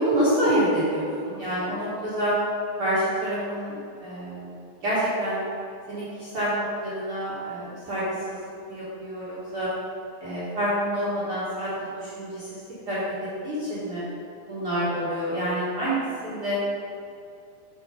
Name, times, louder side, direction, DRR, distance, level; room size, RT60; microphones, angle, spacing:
voice 1, 0.0-2.3 2.8-4.5 4.8-5.4 5.9-8.4 8.7-9.7 10.2-11.7 12.0-13.0 13.4-14.0 14.5-16.0 16.2-16.6, equal, 50° right, -12 dB, 1.9 m, -27 dB
5.9 x 4.8 x 5.2 m, 2.5 s
omnidirectional pair, 3.9 m